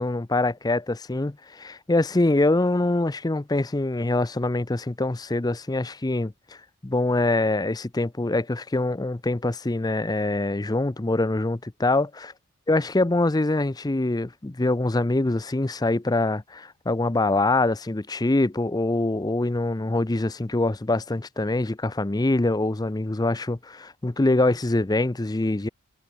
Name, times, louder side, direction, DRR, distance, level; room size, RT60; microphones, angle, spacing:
voice 1, 0.0-6.3 6.8-12.3 12.7-25.7, left 2 dB, 15° left, 0.5 m, -24 dB
head